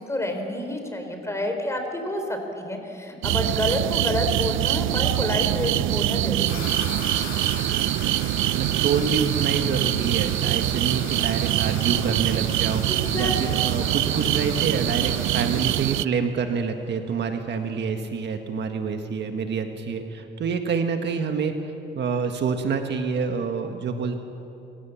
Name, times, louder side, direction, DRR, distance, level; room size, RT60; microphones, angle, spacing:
voice 1, 0.0-6.8 12.9-13.8, left 1 dB, 15° left, 4 dB, 4.3 m, -29 dB
sound 1, 3.2-16.1, right 15 dB, 85° right, 0.5 m, -24 dB
sound 2, 6.5-15.8, left 6 dB, 80° left, 3.4 m, -39 dB
voice 2, 8.5-12.8 13.2-21.5 21.9-24.2, right 5 dB, 60° right, 6 dB, 1.6 m, -27 dB
28.5 x 16.0 x 7.2 m, 2.7 s
cardioid pair, 90°, 20 cm